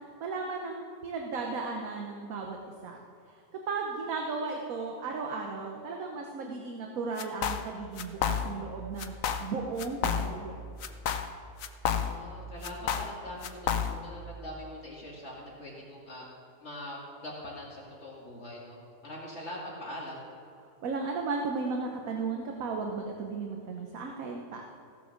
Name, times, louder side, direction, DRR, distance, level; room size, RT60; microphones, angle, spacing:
voice 1, 0.2-2.6 2.8-3.0 3.3-3.4 3.7-9.1 9.4-10.6 20.8-24.6, right 4 dB, 65° right, 1 dB, 1.4 m, -35 dB
sound 1, 7.2-7.7 8.0-8.7 9.0-9.5 9.8-10.5 10.8-12.3 12.6-14.1, left 7 dB, 65° left, 1.0 m, -31 dB
voice 2, 12.0-16.2 16.6-18.8 19.0-20.2, left 1 dB, 45° left, -4 dB, 2.2 m, -42 dB
15.5 x 7.3 x 6.4 m, 2.5 s
omnidirectional pair, 1.7 m